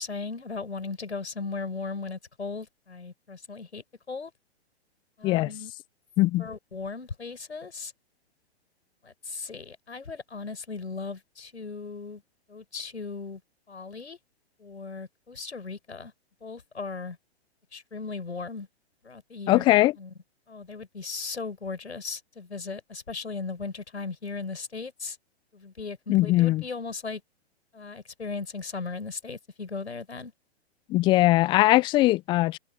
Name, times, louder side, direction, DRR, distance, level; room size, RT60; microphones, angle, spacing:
voice 1, 0.0-4.3 5.2-5.7 6.4-7.9 9.0-12.2 12.5-13.4 13.7-14.2 14.6-16.1 16.4-17.2 17.7-18.7 19.0-19.7 20.0-20.1 20.5-25.2 25.5-27.2 27.7-30.3, left 4 dB, 80° left, 7.4 m, -37 dB
voice 2, 6.2-6.5 19.5-19.9 26.1-26.6 30.9-32.6, left 18 dB, 15° left, 0.5 m, -20 dB
figure-of-eight pair, 125°, 33 cm